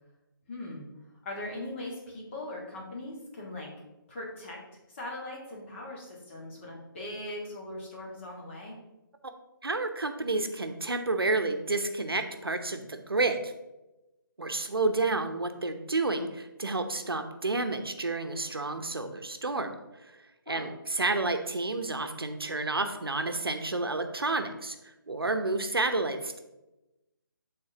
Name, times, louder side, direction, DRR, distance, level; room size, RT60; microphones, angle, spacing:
voice 1, 0.5-0.9 1.2-3.7 4.1-4.6 4.9-8.8 20.5-20.7, left 1 dB, 30° left, -3 dB, 1.9 m, -40 dB
voice 2, 9.6-13.5 14.4-19.8 20.1-26.4, right 3 dB, 85° right, 6 dB, 0.9 m, -30 dB
11.5 x 4.0 x 2.9 m, 0.99 s
figure-of-eight pair, 155°, 12 cm